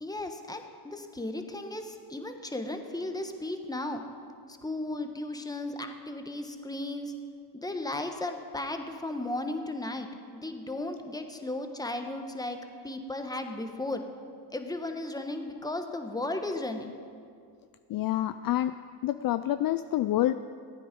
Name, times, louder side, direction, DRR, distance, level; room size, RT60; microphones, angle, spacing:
voice 1, 0.0-4.0 4.5-7.1 7.5-12.6 12.8-14.0 14.5-16.9, left 2 dB, 10° left, 5 dB, 1.2 m, -35 dB
voice 2, 17.9-18.7 19.0-20.3, left 14 dB, 50° left, 11 dB, 0.4 m, -27 dB
14.5 x 9.3 x 5.3 m, 2.2 s
supercardioid pair, 75°, 46 cm